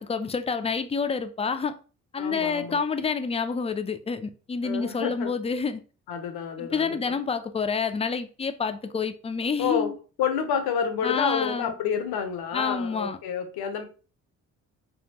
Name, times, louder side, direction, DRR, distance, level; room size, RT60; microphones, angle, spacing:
voice 1, 0.0-1.8 2.1-5.8 6.6-9.9 11.0-11.7 12.5-13.2, left 5 dB, 15° left, 0.4 m, -28 dB
voice 2, 2.2-2.8 4.6-5.3 6.1-7.2 9.6-9.9 10.2-13.8, left 7 dB, 75° left, 0.8 m, -29 dB
3.5 x 2.3 x 2.8 m
supercardioid pair, 60°, 38 cm